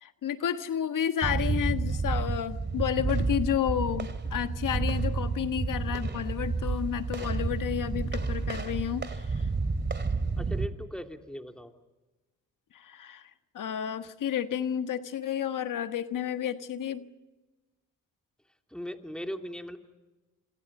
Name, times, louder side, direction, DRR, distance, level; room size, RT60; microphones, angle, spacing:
voice 1, 0.0-9.5 12.7-13.3 13.5-17.1, left 9 dB, 60° left, 9 dB, 1.5 m, -31 dB
sound 1, 1.2-10.7, right 4 dB, 30° right, 2.5 m, -30 dB
voice 2, 10.4-11.7 18.7-19.8, equal, ahead, 4 dB, 3.1 m, -38 dB
28.0 x 27.0 x 5.5 m, 1.2 s
supercardioid pair, 55°, 35 cm